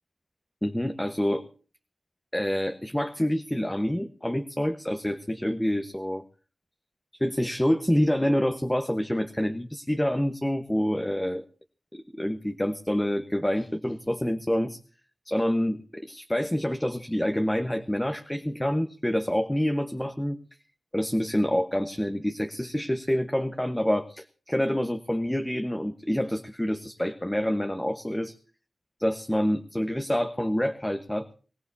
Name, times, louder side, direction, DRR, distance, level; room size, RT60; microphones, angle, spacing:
voice 1, 0.6-1.4 2.3-6.2 7.2-11.4 11.9-14.8 15.3-20.4 20.9-28.4 29.0-31.3, equal, 10° left, 6 dB, 1.2 m, -27 dB
23.0 x 17.5 x 2.8 m, 0.38 s
wide cardioid pair, 80°, 0 cm